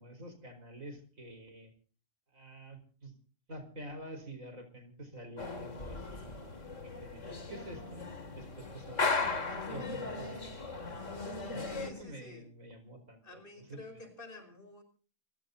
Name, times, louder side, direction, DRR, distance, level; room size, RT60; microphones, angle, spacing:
voice 1, 0.0-1.7 2.3-3.1 3.5-6.5 6.8-9.2 9.7-13.8, right 1 dB, 90° right, 7 dB, 5.1 m, -48 dB
sound 1, 5.4-11.9, left 4 dB, 65° left, 3.0 m, -37 dB
voice 2, 11.5-12.5 13.2-14.8, left 2 dB, 40° left, 6 dB, 5.2 m, -50 dB
27.5 x 15.5 x 2.8 m, 0.40 s
omnidirectional pair, 1.4 m